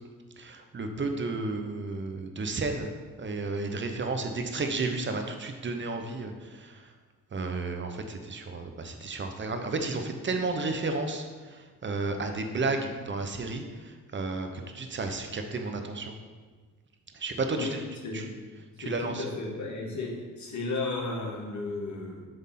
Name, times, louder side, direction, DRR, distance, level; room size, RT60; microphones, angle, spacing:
voice 1, 0.4-2.9 3.2-6.9 7.3-16.1 17.1-17.8 18.1-18.2 18.8-19.2, right 3 dB, 35° right, 5 dB, 0.9 m, -32 dB
voice 2, 18.8-22.3, left 3 dB, 55° left, -1 dB, 1.7 m, -34 dB
7.5 x 3.6 x 5.8 m, 1.4 s
cardioid pair, 80°, 34 cm